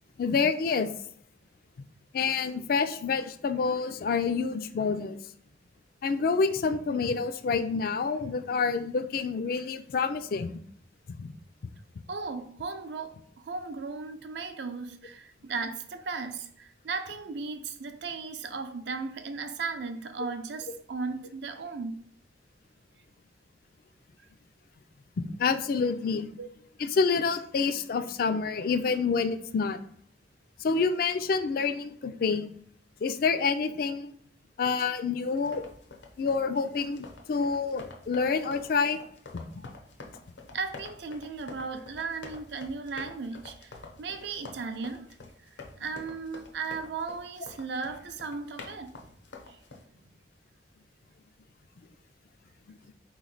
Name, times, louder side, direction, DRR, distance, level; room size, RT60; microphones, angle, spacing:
voice 1, 0.2-0.9 2.1-5.2 6.0-10.6 11.1-11.3 25.4-26.3 26.8-29.8 30.6-32.5 33.0-34.1 34.6-35.6 36.2-39.0 39.3-39.4, left 5 dB, 55° left, 0.3 m, -28 dB
voice 2, 12.1-22.0 26.4-26.5 40.5-45.0 45.8-48.9 49.5-49.6 50.0-50.1, right 4 dB, 70° right, 0.5 m, -36 dB
sound 1, 35.3-49.8, left 3 dB, 80° left, 0.7 m, -48 dB
4.2 x 3.1 x 3.9 m
head